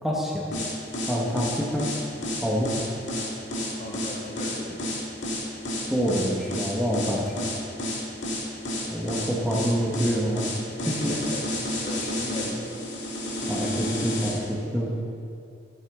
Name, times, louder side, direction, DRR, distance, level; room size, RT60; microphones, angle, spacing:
voice 1, 0.0-0.5 1.1-1.9 2.4-2.9 5.9-7.5 8.9-10.5 10.9-11.1 13.5-14.9, equal, ahead, -4 dB, 1.0 m, -27 dB
sound 1, 0.5-14.4, left 1 dB, 70° left, 2.1 m, -30 dB
voice 2, 3.8-4.8 10.8-12.7, equal, 40° left, -3 dB, 1.9 m, -37 dB
15.0 x 7.9 x 3.6 m, 2.4 s
head